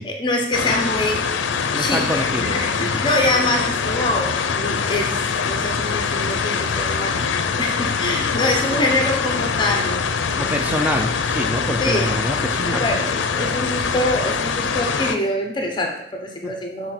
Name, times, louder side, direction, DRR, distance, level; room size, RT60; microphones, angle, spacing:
voice 1, 0.0-1.4 1.8-5.2 5.5-7.2 7.6-10.2 11.8-12.2 12.6-16.9, left 1 dB, 25° left, 2 dB, 0.9 m, -24 dB
sound 1, 0.5-15.2, left 5 dB, 85° left, 0.5 m, -23 dB
voice 2, 1.7-3.0 10.4-12.9 16.4-16.5, equal, 10° right, 3 dB, 0.5 m, -26 dB
6.8 x 4.0 x 4.5 m, 0.69 s
head